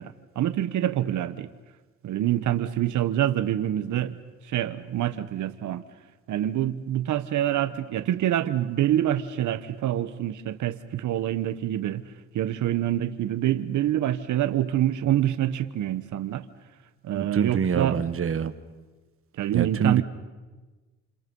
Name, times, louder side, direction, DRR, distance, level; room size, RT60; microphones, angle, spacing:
voice 1, 0.0-1.5 2.0-4.2 4.5-5.8 6.3-12.0 12.3-16.4 17.0-18.0 19.4-20.0, right 12 dB, 75° right, 12 dB, 1.2 m, -26 dB
voice 2, 17.2-18.5 19.5-20.0, right 7 dB, 45° right, 12 dB, 1.5 m, -25 dB
29.5 x 28.0 x 5.5 m, 1.2 s
cardioid pair, 90°, 30 cm